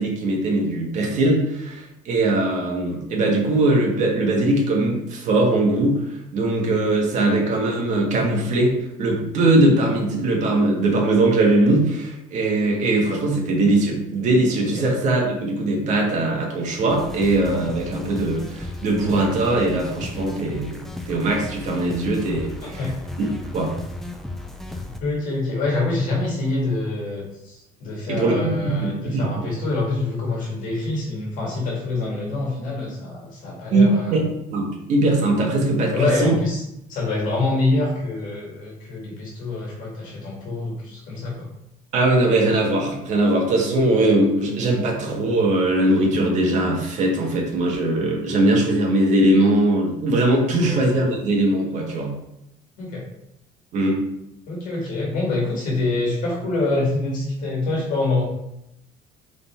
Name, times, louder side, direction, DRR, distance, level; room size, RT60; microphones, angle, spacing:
voice 1, 0.0-8.7 9.0-22.8 23.2-23.3 23.5-23.7 28.1-29.5 33.7-36.3 41.9-52.1 53.7-54.0, right 2 dB, 50° right, -1 dB, 1.7 m, -20 dB
sound 1, 16.9-25.0, left 1 dB, ahead, 0.5 m, -35 dB
voice 2, 22.6-22.9 24.7-34.2 35.9-36.6 36.9-41.5 50.6-50.8 52.8-53.0 54.5-58.3, left 2 dB, 55° left, -3 dB, 1.9 m, -25 dB
5.4 x 4.0 x 4.4 m, 0.83 s
cardioid pair, 160°, 16 cm